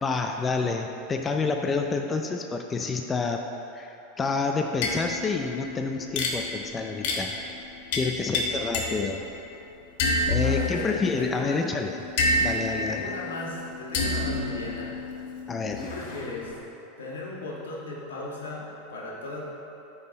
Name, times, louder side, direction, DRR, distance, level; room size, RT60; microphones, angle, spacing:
voice 1, 0.0-3.5 3.7-7.4 7.9-9.2 10.3-11.9 12.4-13.1 15.5-15.9, left 4 dB, 20° left, 4 dB, 0.5 m, -28 dB
sound 1, 4.7-9.5 10.0-16.5, left 2 dB, 65° left, 1.2 m, -30 dB
voice 2, 8.3-8.7 10.4-11.6 12.7-15.0 15.8-16.6 17.0-19.4, left 2 dB, 90° left, -4 dB, 1.6 m, -37 dB
9.6 x 5.6 x 4.0 m, 3.0 s
hypercardioid pair, 105°, 0 cm